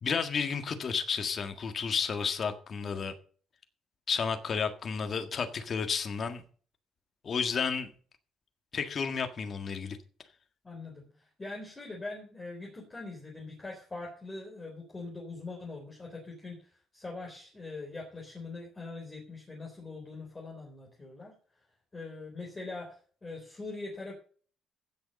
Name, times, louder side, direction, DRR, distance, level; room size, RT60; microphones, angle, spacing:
voice 1, 0.0-3.1 4.1-6.4 7.2-7.9 8.7-10.0, left 6 dB, 40° left, 1.6 m, -32 dB
voice 2, 10.6-21.3 21.9-24.1, left 3 dB, 20° left, 3.7 m, -42 dB
16.0 x 6.7 x 5.3 m
cardioid pair, 135°, 0 cm